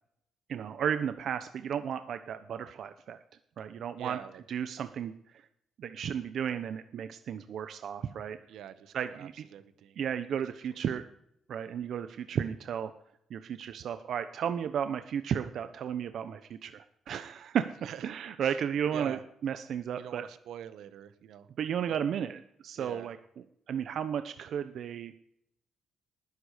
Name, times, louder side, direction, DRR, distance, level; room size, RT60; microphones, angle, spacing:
voice 1, 0.5-3.2 3.6-4.2 4.5-5.1 5.8-8.4 8.9-9.4 10.0-11.0 11.5-12.9 13.3-17.7 18.0-20.2 21.6-23.2 23.7-25.1, right 8 dB, 55° right, 10 dB, 0.8 m, -33 dB
voice 2, 4.0-4.4 8.5-10.1 17.8-18.1 18.4-18.6 18.9-19.2 19.9-21.5 21.9-22.0 22.8-23.1, right 10 dB, 80° right, 12 dB, 1.3 m, -45 dB
20.0 x 11.5 x 5.1 m, 0.75 s
cardioid pair, 145°, 0 cm